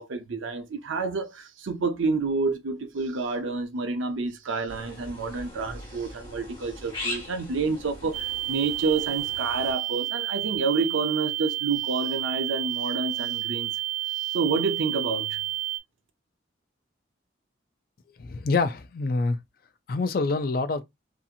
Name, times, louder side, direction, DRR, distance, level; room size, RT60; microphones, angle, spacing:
voice 1, 0.0-13.7 14.2-15.4, right 4 dB, 85° right, 0.5 m, -29 dB
sound 1, 4.7-9.7, left 2 dB, 25° left, 1.4 m, -40 dB
sound 2, 8.1-15.8, right 15 dB, 40° right, 0.4 m, -30 dB
voice 2, 18.2-19.4 19.9-20.8, left 3 dB, 50° left, 0.4 m, -26 dB
2.7 x 2.4 x 2.6 m
head